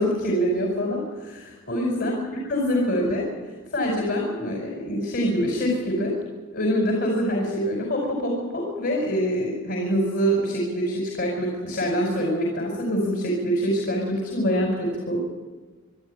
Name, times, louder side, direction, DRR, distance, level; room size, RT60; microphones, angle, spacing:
voice 1, 0.0-3.3 3.7-6.1 6.5-15.2, equal, 50° left, 0 dB, 5.0 m, -25 dB
25.5 x 12.5 x 9.9 m, 1.3 s
head